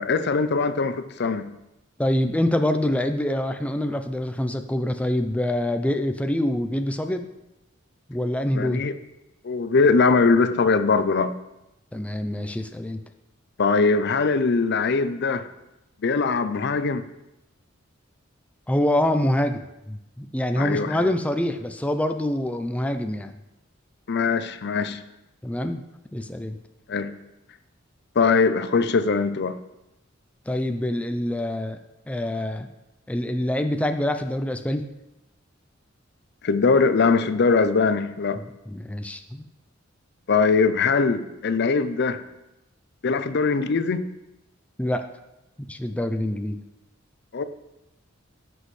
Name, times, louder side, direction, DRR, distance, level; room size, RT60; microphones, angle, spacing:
voice 1, 0.0-1.5 8.5-8.9 9.4-11.4 13.6-15.5 16.0-17.0 20.6-21.1 24.1-25.0 26.9-27.1 28.2-29.6 36.4-38.4 40.3-42.2 43.0-44.1 47.3-47.4, left 4 dB, 60° left, 0.5 m, -21 dB
voice 2, 2.0-7.3 8.1-8.8 11.9-13.0 18.7-23.4 25.4-25.8 26.1-26.6 30.5-31.8 32.1-32.7 33.1-34.9 38.7-39.5 44.8-45.1 45.7-46.6, left 1 dB, 5° left, 0.4 m, -25 dB
15.0 x 6.2 x 3.2 m
head